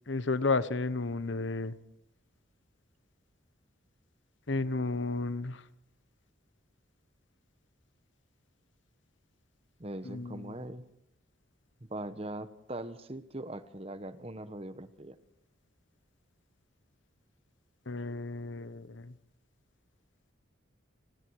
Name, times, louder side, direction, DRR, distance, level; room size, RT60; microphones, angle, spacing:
voice 1, 0.1-1.8 4.5-5.6 10.1-10.5 17.9-19.1, left 3 dB, 65° left, 15 dB, 1.1 m, -32 dB
voice 2, 9.8-10.9 11.8-15.2, right 1 dB, 30° right, 12 dB, 1.2 m, -41 dB
30.0 x 21.0 x 4.8 m, 0.73 s
head